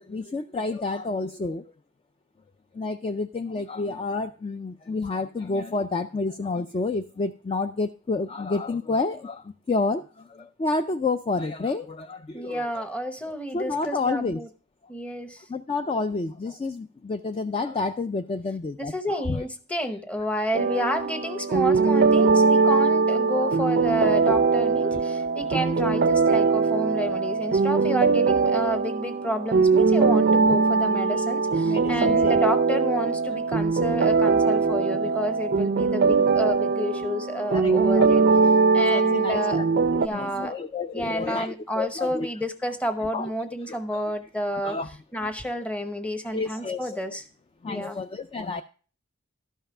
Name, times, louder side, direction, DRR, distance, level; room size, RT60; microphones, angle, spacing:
voice 1, 0.0-1.6 2.7-12.8 13.5-14.4 15.5-19.4 22.3-22.4 23.3-23.5 24.9-25.0 25.4-26.0 30.5-30.6 31.6-32.4 37.5-38.1 38.9-39.7 40.1-42.3 43.1-43.3 43.7-44.0 44.5-44.9 46.3-47.0 47.6-48.6, left 3 dB, 25° left, 8 dB, 0.3 m, -30 dB
voice 2, 12.3-14.5 14.9-15.4 18.8-38.2 38.7-39.6 40.0-40.5 40.9-44.8 45.1-47.2 47.7-48.0, equal, 5° left, 9 dB, 0.8 m, -30 dB
sound 1, 20.5-40.1, right 4 dB, 50° right, 0.4 m, -21 dB
12.0 x 5.6 x 4.8 m, 0.39 s
head